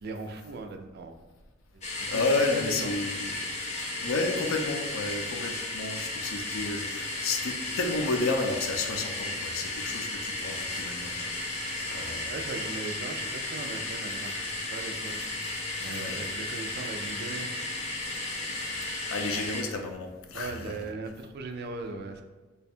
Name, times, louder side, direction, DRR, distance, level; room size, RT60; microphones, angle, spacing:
voice 1, 0.0-1.2 1.7-2.9 12.3-15.2 15.8-17.5 19.2-19.5 20.3-22.2, right 3 dB, 50° right, 5 dB, 0.3 m, -39 dB
sound 1, 1.8-19.6, left 2 dB, 35° left, 0.6 m, -34 dB
voice 2, 2.1-3.5 4.0-11.1 11.9-12.4 15.9-16.2 18.5-20.8, left 3 dB, 90° left, 5 dB, 0.5 m, -31 dB
3.3 x 2.2 x 4.2 m, 1.2 s
head